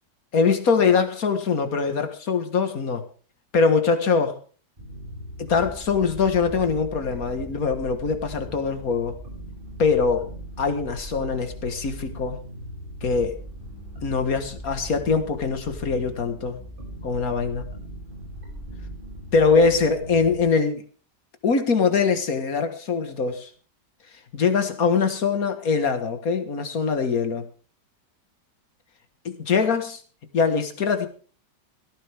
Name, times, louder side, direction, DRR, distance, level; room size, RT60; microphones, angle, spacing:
voice 1, 0.3-3.0 3.5-4.4 5.4-9.2 9.8-10.3 10.6-12.4 13.0-13.3 14.0-16.6 17.0-17.7 19.3-20.8 21.4-23.5 24.3-27.5 29.3-30.0 30.3-31.1, left 5 dB, 50° left, 8 dB, 2.0 m, -23 dB
sound 1, 4.8-20.5, right 1 dB, 25° right, 6.9 m, -39 dB
17.5 x 14.5 x 3.5 m, 0.41 s
omnidirectional pair, 1.9 m